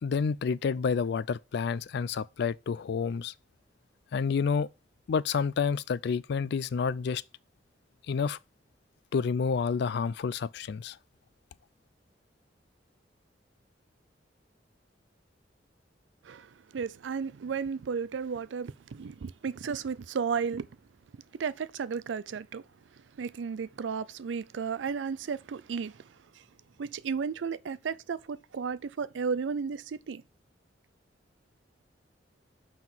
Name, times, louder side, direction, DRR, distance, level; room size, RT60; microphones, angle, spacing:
voice 1, 0.0-3.3 4.1-4.7 5.1-7.2 8.1-8.4 9.1-11.0, left 5 dB, 65° left, 0.4 m, -29 dB
voice 2, 16.2-20.7 21.3-22.7 23.2-26.4 26.8-30.2, right 6 dB, 85° right, 0.4 m, -34 dB
5.7 x 5.6 x 4.5 m
head